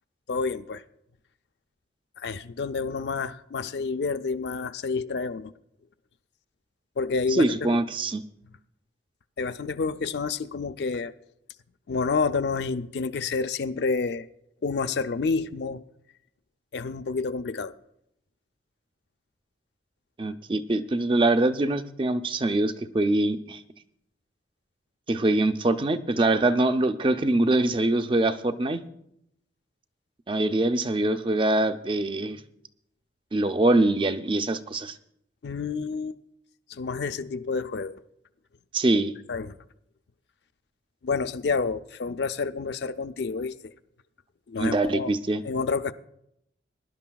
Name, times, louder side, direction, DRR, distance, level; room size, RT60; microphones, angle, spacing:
voice 1, 0.3-0.8 2.2-5.5 7.0-7.8 9.4-11.1 11.9-14.3 14.6-15.8 16.7-17.7 35.4-36.2 36.7-38.0 39.3-39.6 41.0-43.5 44.5-45.1 45.4-45.9, left 4 dB, 65° left, 0.4 m, -29 dB
voice 2, 7.3-8.2 20.2-23.6 25.1-28.8 30.3-32.4 33.3-34.9 38.7-39.1 44.6-45.4, right 2 dB, 30° right, 0.5 m, -24 dB
23.0 x 11.5 x 2.3 m
head